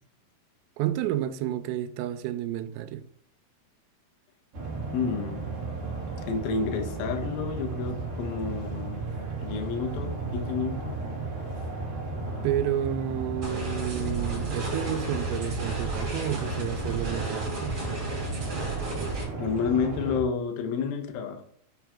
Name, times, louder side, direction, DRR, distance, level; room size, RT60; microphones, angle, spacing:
voice 1, 0.8-3.0 12.4-17.8, right 11 dB, 85° right, 3.3 m, -30 dB
sound 1, 4.5-20.2, right 3 dB, 65° right, 1.4 m, -34 dB
voice 2, 4.9-5.5 6.3-9.1 9.4-11.0 19.4-21.4, left 6 dB, 75° left, 2.2 m, -30 dB
sound 2, 13.4-19.2, right 2 dB, 30° right, 2.8 m, -34 dB
7.9 x 5.8 x 3.6 m
omnidirectional pair, 5.9 m